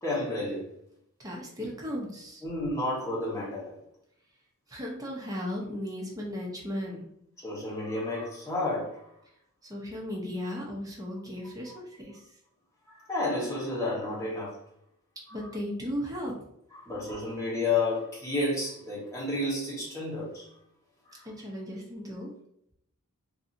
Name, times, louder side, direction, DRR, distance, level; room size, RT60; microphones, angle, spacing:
voice 1, 0.0-0.7 2.4-3.7 7.4-9.1 12.9-14.6 16.8-20.5 21.1-21.3, left 2 dB, 15° left, -7 dB, 1.1 m, -31 dB
voice 2, 1.2-2.4 4.7-7.1 9.6-12.2 15.3-16.4 21.2-22.3, equal, 15° right, -2 dB, 0.7 m, -36 dB
2.7 x 2.6 x 2.5 m, 0.74 s
head